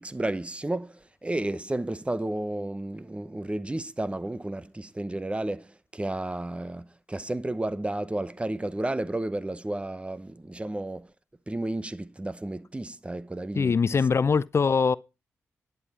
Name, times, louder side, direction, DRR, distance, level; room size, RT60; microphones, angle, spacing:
voice 1, 0.0-11.1 11.5-14.0, right 1 dB, 20° right, 0.9 m, -32 dB
voice 2, 13.6-15.0, left 5 dB, 50° left, 0.5 m, -22 dB
11.0 x 9.4 x 4.3 m
supercardioid pair, 45°, 6 cm